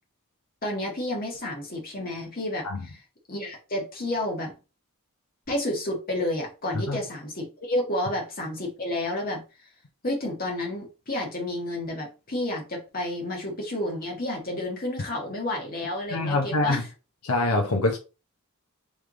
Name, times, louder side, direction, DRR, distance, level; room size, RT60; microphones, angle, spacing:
voice 1, 0.6-2.7 3.3-4.5 5.5-9.4 10.0-16.8, left 1 dB, 40° left, 1.5 m, -30 dB
voice 2, 16.1-16.8 17.2-18.0, left 2 dB, 80° left, 0.8 m, -25 dB
3.5 x 3.2 x 3.8 m
head